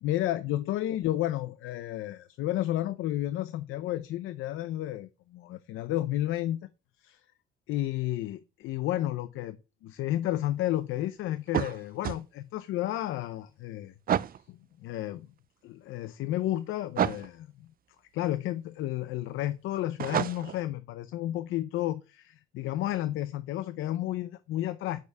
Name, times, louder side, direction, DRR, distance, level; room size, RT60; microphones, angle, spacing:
voice 1, 0.0-6.7 7.0-7.2 7.7-13.9 14.5-15.3 15.6-17.7 18.1-25.0, left 14 dB, 90° left, 0.6 m, -32 dB
sound 1, 11.5-12.2 14.1-14.4 17.0-17.3 20.0-20.6, right 10 dB, 50° right, 0.5 m, -29 dB
6.7 x 4.9 x 6.9 m
cardioid pair, 90°, 20 cm